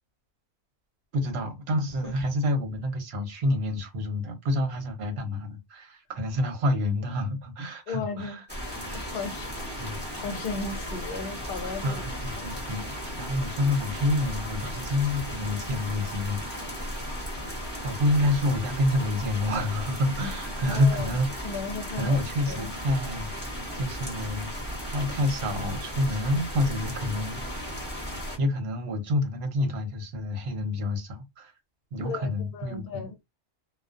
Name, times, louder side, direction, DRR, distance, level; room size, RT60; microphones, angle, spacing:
voice 1, 1.1-8.5 8.9-9.0 9.8-10.0 11.8-12.9 13.2-17.0 17.8-21.6 21.9-23.5 23.7-24.5 24.8-27.7 28.4-31.5 31.9-33.2, left 1 dB, 65° right, 1.0 m, -28 dB
voice 2, 7.9-8.4 8.9-12.0 12.3-12.9 20.6-21.2 21.4-22.2 22.5-22.7 32.0-33.2, left 4 dB, 60° left, 0.7 m, -36 dB
sound 1, 8.5-28.4, equal, 10° left, 0.9 m, -35 dB
2.3 x 2.2 x 2.4 m
omnidirectional pair, 1.2 m